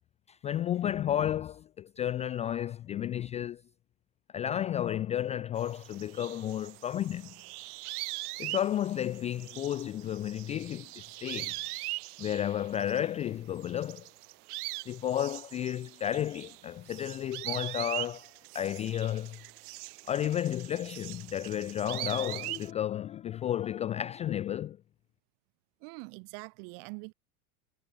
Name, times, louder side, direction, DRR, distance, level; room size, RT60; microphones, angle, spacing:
voice 1, 0.3-3.6 4.3-7.3 8.4-11.6 12.2-14.1 14.9-18.3 18.5-19.4 20.1-24.8, left 11 dB, 15° left, 0.3 m, -32 dB
sound 1, 5.6-13.3 13.6-22.7, right 23 dB, 80° right, 1.0 m, -41 dB
voice 2, 25.8-27.1, right 40 dB or more, 55° right, 1.9 m, -44 dB
supercardioid pair, 160°, 45 cm